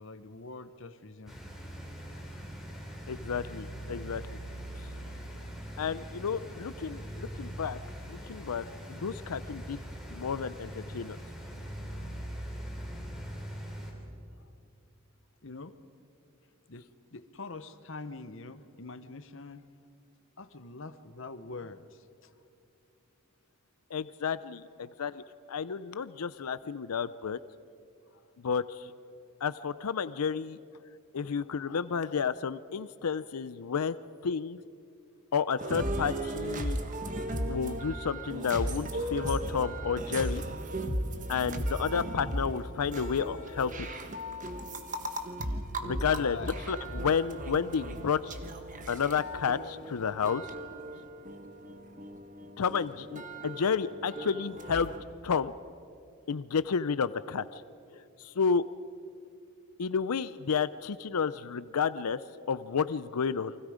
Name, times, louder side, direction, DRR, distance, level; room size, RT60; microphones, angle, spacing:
voice 1, 0.0-1.4 5.1-5.2 14.3-14.5 15.4-15.8 16.7-16.8 17.1-19.6 20.4-22.3 28.1-28.3 46.1-46.6, left 3 dB, 60° left, 12 dB, 1.0 m, -44 dB
sound 1, 1.3-13.9, equal, ahead, 3.7 m, -42 dB
voice 2, 3.1-4.4 5.8-7.8 8.1-9.8 10.1-11.2 23.9-25.2 25.5-27.4 28.4-28.9 29.4-30.6 31.1-34.0 34.2-34.6 35.3-36.8 37.5-40.4 41.3-43.9 45.8-46.4 46.7-48.2 48.9-50.4 52.6-54.9 55.2-55.5 56.3-57.6 57.9-58.6 59.8-62.2 62.5-63.6, left 6 dB, 90° left, 14 dB, 0.5 m, -31 dB
sound 2, 35.6-55.0, right 1 dB, 35° right, 1.4 m, -36 dB
29.5 x 24.5 x 5.1 m, 2.5 s
head